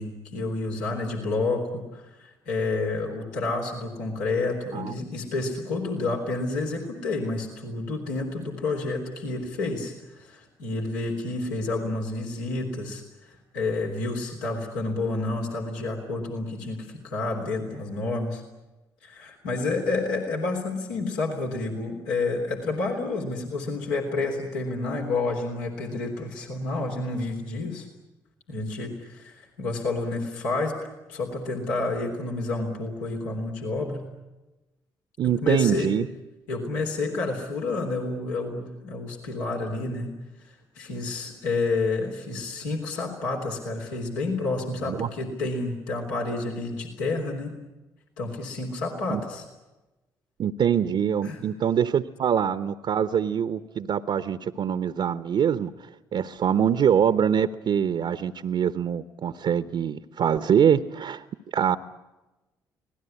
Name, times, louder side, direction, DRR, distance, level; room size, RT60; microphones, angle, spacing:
voice 1, 0.0-18.4 19.0-27.9 28.5-30.8 31.1-34.1 35.2-35.9 36.5-40.1 40.4-47.6 48.2-49.4 51.2-51.4, left 3 dB, 80° left, 1 dB, 3.4 m, -29 dB
voice 2, 35.2-36.1 44.8-45.1 49.1-49.2 50.4-55.7 56.1-61.2 61.5-61.8, right 8 dB, 55° right, 13 dB, 0.9 m, -24 dB
25.5 x 18.5 x 9.9 m, 1.1 s
hypercardioid pair, 45°, 10 cm